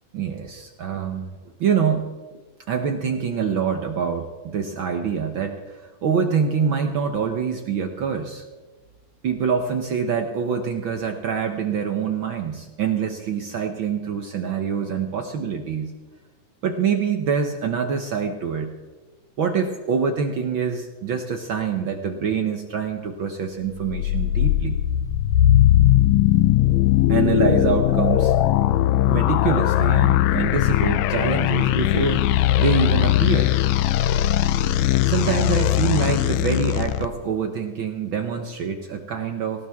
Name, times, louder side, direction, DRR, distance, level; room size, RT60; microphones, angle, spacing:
voice 1, 0.1-2.1 2.7-8.4 9.2-15.9 16.6-18.7 19.4-24.8 27.1-28.4 29.1-32.3 32.6-33.5 35.0-39.7, right 6 dB, 75° right, 5 dB, 1.1 m, -25 dB
sound 1, 23.8-37.1, left 13 dB, 80° left, 1.7 m, -19 dB
19.5 x 18.5 x 3.6 m, 1.3 s
omnidirectional pair, 3.7 m